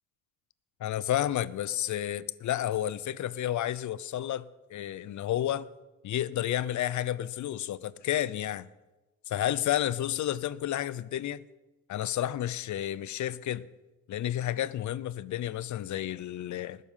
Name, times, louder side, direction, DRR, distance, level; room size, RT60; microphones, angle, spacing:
voice 1, 0.8-5.7 6.0-8.7 9.3-11.4 11.9-13.6 14.1-16.8, left 12 dB, 55° left, 0.6 m, -31 dB
20.0 x 7.3 x 5.6 m
supercardioid pair, 75°, 35 cm